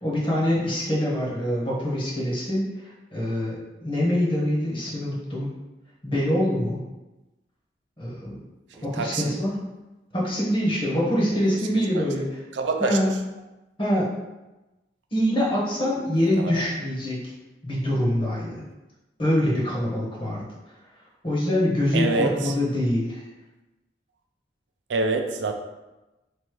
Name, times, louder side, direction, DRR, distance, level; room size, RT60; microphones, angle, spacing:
voice 1, 0.0-3.6 3.8-5.6 6.0-6.8 8.0-8.4 8.8-9.6 10.1-12.3 12.8-13.1 13.8-14.1 15.1-17.2 17.6-18.6 19.2-20.4 21.2-23.2, equal, 30° left, -5 dB, 1.2 m, -24 dB
voice 2, 8.8-9.4 11.3-11.4 11.9-12.1 12.5-13.2 16.4-16.6 21.9-22.6 24.9-25.5, right 3 dB, 85° right, 4 dB, 0.5 m, -26 dB
3.3 x 2.7 x 4.6 m, 1.0 s
head